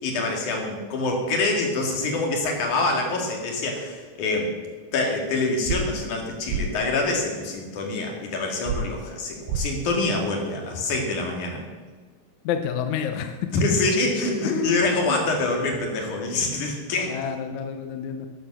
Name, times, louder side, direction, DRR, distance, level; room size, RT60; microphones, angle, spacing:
voice 1, 0.0-4.5 4.9-11.6 13.6-17.2, left 2 dB, 60° left, 1 dB, 3.5 m, -25 dB
sound 1, 5.7-5.8 6.5-6.6 8.7-8.8 9.5-9.6, right 7 dB, 80° right, 2.6 m, -26 dB
voice 2, 12.4-13.4 14.4-14.8 15.1-15.2 17.0-18.3, left 7 dB, 75° left, 6 dB, 1.8 m, -29 dB
12.5 x 9.7 x 6.1 m, 1.4 s
omnidirectional pair, 4.2 m